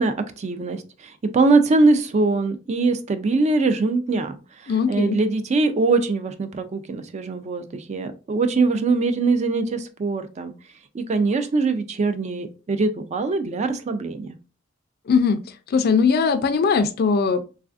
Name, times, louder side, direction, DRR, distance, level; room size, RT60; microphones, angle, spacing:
voice 1, 0.0-4.4 4.6-10.5 10.9-14.3, right 3 dB, 35° right, 10 dB, 0.3 m, -22 dB
voice 2, 4.7-5.2 15.1-15.4 15.7-17.4, left 5 dB, 50° left, 10 dB, 0.4 m, -20 dB
3.2 x 2.4 x 2.4 m, 0.32 s
head